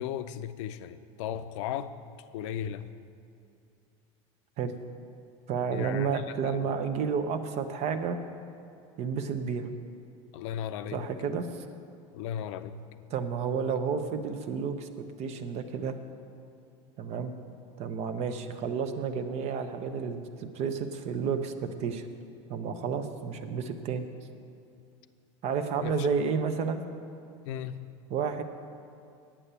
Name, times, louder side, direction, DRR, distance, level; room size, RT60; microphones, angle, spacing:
voice 1, 0.0-1.9 2.3-2.9 5.7-6.6 10.3-11.1 12.1-12.9 25.8-26.1 27.5-27.8, left 9 dB, 75° left, 11 dB, 0.5 m, -36 dB
voice 2, 5.5-8.2 9.0-9.7 10.9-11.7 13.1-14.9 15.2-15.9 17.0-17.3 17.8-22.1 22.5-24.0 25.4-26.8 28.1-28.4, right 6 dB, 45° right, 9 dB, 0.8 m, -31 dB
8.9 x 8.4 x 6.8 m, 2.5 s
supercardioid pair, 130°, 15 cm